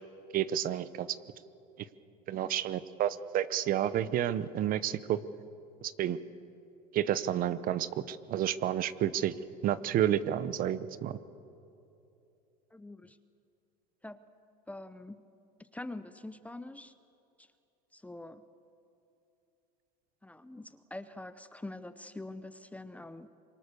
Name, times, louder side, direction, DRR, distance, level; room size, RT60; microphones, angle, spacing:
voice 1, 0.3-1.1 2.3-5.2 5.8-6.2 6.9-9.3 9.6-11.2, right 11 dB, 45° right, 15 dB, 0.9 m, -30 dB
voice 2, 12.7-13.2 14.0-14.3 14.7-15.2 15.6-16.9 17.4-17.5 17.9-18.4 20.2-23.3, left 2 dB, 5° left, 12 dB, 0.7 m, -45 dB
25.5 x 23.5 x 6.9 m, 2.8 s
supercardioid pair, 115°, 21 cm